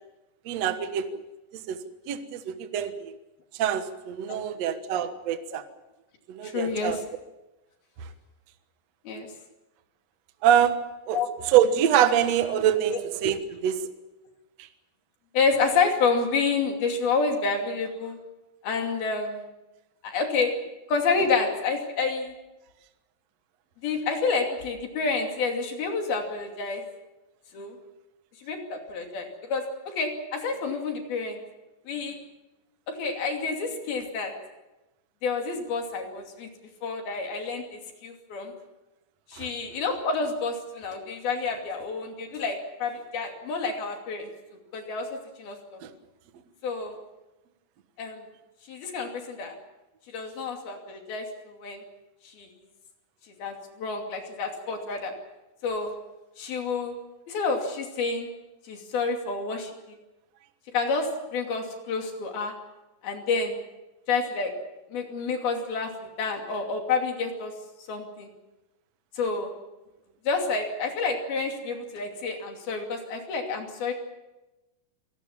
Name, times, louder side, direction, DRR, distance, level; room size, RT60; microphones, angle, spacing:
voice 1, 0.4-1.2 1.5-3.2 3.5-5.6 6.3-7.0 8.0-8.1 10.4-10.8 11.1-11.2 11.4-13.9 14.6-14.7 39.4-39.5 45.8-45.9, right 9 dB, 70° right, 9 dB, 1.6 m, -25 dB
voice 2, 6.4-6.9 9.1-9.3 11.1-11.3 12.9-13.0 15.3-18.2 18.6-19.4 20.0-20.5 20.9-22.3 23.8-26.8 27.5-27.8 28.4-31.4 31.9-32.2 32.9-34.3 35.2-36.5 36.8-38.5 39.3-44.3 44.7-45.1 45.4-45.6 46.6-46.9 48.0-48.2 48.7-49.5 50.1-51.8 52.2-52.5 53.4-55.1 55.6-55.9 56.4-56.9 57.3-58.3 58.7-59.7 60.7-62.5 63.0-63.6 64.1-64.5 64.9-65.9 66.2-67.5 67.9-68.3 69.2-69.5 70.3-73.9, left 4 dB, 60° left, 3 dB, 4.3 m, -29 dB
27.5 x 18.0 x 7.3 m, 1.0 s
omnidirectional pair, 5.2 m